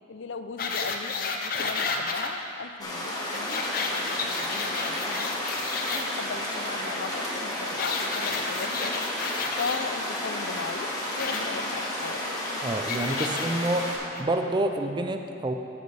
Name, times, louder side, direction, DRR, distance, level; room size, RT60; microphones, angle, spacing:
voice 1, 0.1-5.4 5.9-9.1 9.6-12.2, left 5 dB, 90° left, 10 dB, 0.5 m, -37 dB
sound 1, 0.6-2.3 3.3-6.0 7.8-9.8 11.2-11.4 12.9-13.5 14.2-14.3, left 4 dB, 50° left, 0.7 m, -31 dB
sound 2, 2.8-14.0, left 1 dB, 20° left, 1.3 m, -32 dB
voice 2, 12.6-13.9 14.2-15.5, right 1 dB, 25° right, 6 dB, 0.4 m, -27 dB
14.0 x 6.8 x 3.3 m, 2.7 s
head